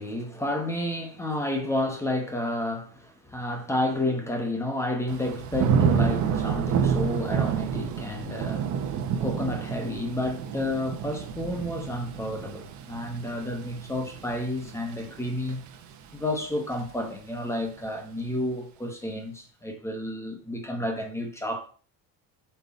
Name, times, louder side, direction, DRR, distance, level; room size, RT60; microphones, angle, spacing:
voice 1, 0.0-8.7 9.2-15.7 16.1-21.7, left 1 dB, 10° left, 1.1 m, -31 dB
Thunder / Rain, 5.1-16.0 16.4-16.9, right 7 dB, 55° right, 1.3 m, -29 dB
8.2 x 6.1 x 4.3 m
cardioid pair, 170°, 35 cm